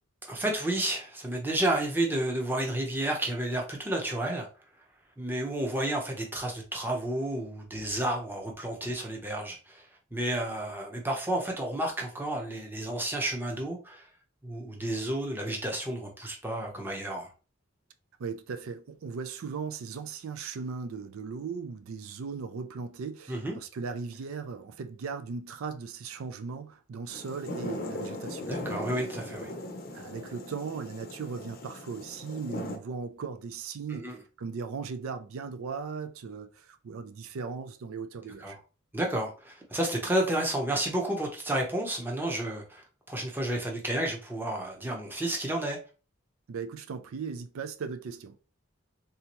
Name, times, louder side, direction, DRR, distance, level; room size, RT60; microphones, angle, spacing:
voice 1, 0.2-4.5 5.2-14.1 14.4-17.3 23.3-23.6 28.5-29.5 33.9-34.2 38.4-38.6 38.9-45.8, right 1 dB, 10° right, 0.7 m, -31 dB
voice 2, 18.2-28.5 29.9-38.6 46.5-48.4, right 5 dB, 85° right, 0.4 m, -38 dB
sound 1, 27.1-32.8, left 1 dB, 45° left, 0.6 m, -39 dB
3.3 x 2.8 x 3.0 m
head